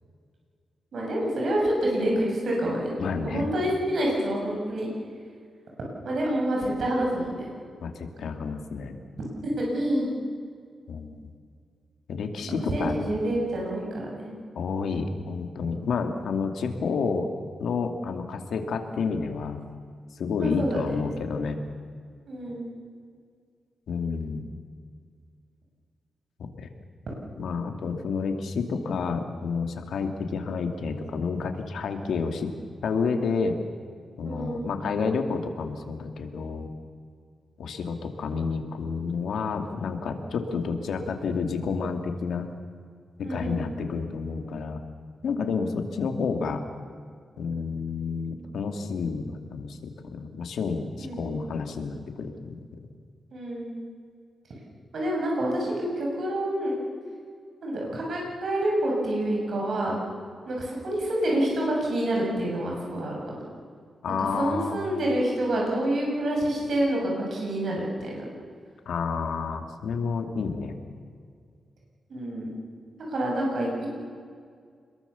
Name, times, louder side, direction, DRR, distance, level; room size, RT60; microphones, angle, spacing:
voice 1, 0.9-2.9 3.2-4.9 6.0-7.5 9.4-10.1 12.5-14.3 20.4-20.9 22.3-22.7 34.2-34.7 43.2-43.7 51.0-51.4 53.3-53.8 54.9-56.8 57.6-60.0 60.5-63.4 64.2-68.2 72.1-72.6 73.1-73.9, right 1 dB, 60° right, -2 dB, 7.4 m, -27 dB
voice 2, 3.0-3.5 7.8-9.0 10.9-11.3 12.1-13.0 14.5-17.3 17.6-19.6 20.2-21.6 23.9-24.4 26.4-26.7 27.4-32.5 32.8-33.6 34.2-36.7 37.6-42.5 43.2-44.8 45.2-46.6 47.4-52.7 64.0-64.8 68.9-70.8, left 5 dB, 85° left, 5 dB, 2.5 m, -30 dB
27.0 x 22.0 x 7.1 m, 2.1 s
wide cardioid pair, 160°, 0 cm